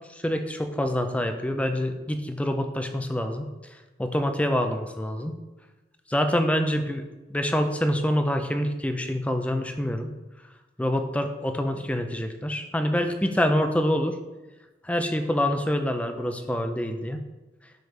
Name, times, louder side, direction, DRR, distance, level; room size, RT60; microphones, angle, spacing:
voice 1, 0.1-3.5 4.0-5.3 6.1-7.0 7.3-10.1 10.8-14.2 14.8-17.2, equal, 5° left, 6 dB, 0.5 m, -26 dB
7.9 x 6.7 x 3.3 m, 1.1 s
head